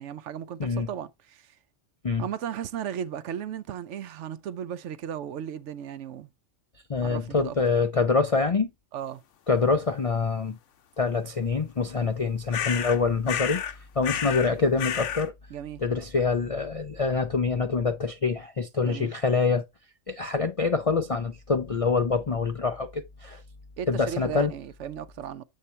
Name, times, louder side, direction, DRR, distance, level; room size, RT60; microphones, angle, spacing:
voice 1, 0.0-1.6 2.2-6.3 7.0-7.6 8.9-9.2 15.5-15.8 18.8-19.1 23.8-25.4, right 9 dB, 70° right, 0.8 m, -35 dB
voice 2, 6.9-8.7 9.5-10.6 11.0-13.6 14.0-15.3 15.8-19.6 20.1-23.4 23.9-24.5, left 4 dB, 50° left, 0.4 m, -25 dB
sound 1, 12.5-13.0 13.3-13.7 14.0-14.5 14.8-15.3, left 9 dB, 70° left, 1.0 m, -30 dB
7.4 x 4.2 x 3.2 m
omnidirectional pair, 1.4 m